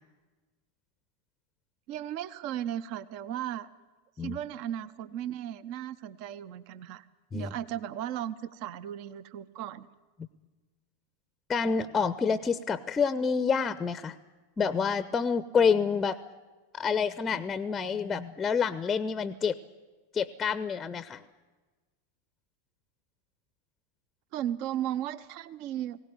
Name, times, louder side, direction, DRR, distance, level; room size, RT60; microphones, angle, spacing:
voice 1, 1.9-3.7 4.2-7.1 7.3-9.9 24.3-26.0, right 11 dB, 45° right, 16 dB, 0.8 m, -35 dB
voice 2, 11.5-14.2 14.6-16.2 16.7-19.6 20.1-21.2, left 6 dB, 15° left, 15 dB, 0.7 m, -28 dB
20.5 x 17.5 x 9.5 m, 1.3 s
figure-of-eight pair, 90°, 0 cm